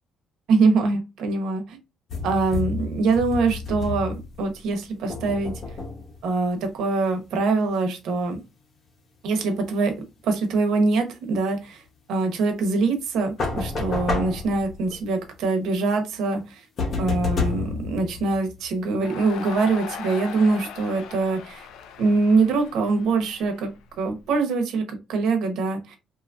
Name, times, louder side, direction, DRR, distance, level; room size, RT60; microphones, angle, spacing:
voice 1, 0.5-1.8 2.2-5.5 6.2-8.4 9.2-9.9 10.2-11.8 12.1-16.7 17.0-21.7 22.0-23.7 24.0-26.0, right 3 dB, 70° right, 5 dB, 0.8 m, -23 dB
sound 1, 2.1-4.5 5.1-6.3 13.4-15.0 16.8-18.8, left 4 dB, 40° left, 0.7 m, -30 dB
Crowd, 19.0-24.2, left 7 dB, 80° left, 0.4 m, -39 dB
2.9 x 2.3 x 2.4 m, 0.25 s
cardioid pair, 155°, 0 cm